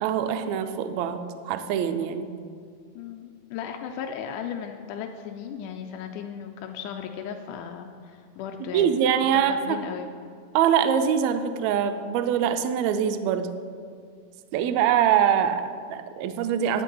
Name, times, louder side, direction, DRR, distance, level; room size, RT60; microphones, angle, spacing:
voice 1, 0.0-2.3 8.6-9.8 10.5-13.5 14.5-16.8, right 8 dB, 85° right, 8 dB, 1.6 m, -24 dB
voice 2, 3.0-8.9 9.3-10.1, left 8 dB, 80° left, 4 dB, 1.9 m, -36 dB
10.0 x 9.2 x 4.6 m, 2.1 s
omnidirectional pair, 3.9 m